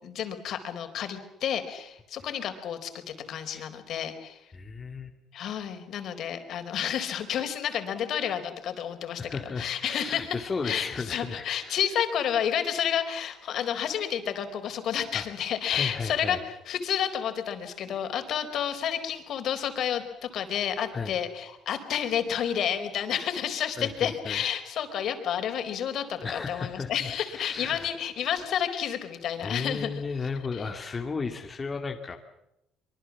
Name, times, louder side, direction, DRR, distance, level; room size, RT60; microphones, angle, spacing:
voice 1, 0.0-4.5 5.3-9.2 9.6-30.0 30.5-30.7, left 9 dB, 60° left, 8 dB, 4.3 m, -30 dB
voice 2, 4.5-5.2 9.2-11.8 15.1-15.3 15.7-16.4 20.9-21.1 23.8-24.4 26.2-27.9 29.4-32.2, left 4 dB, 25° left, 3 dB, 2.4 m, -34 dB
25.0 x 24.0 x 7.3 m, 0.84 s
cardioid pair, 125°, 0 cm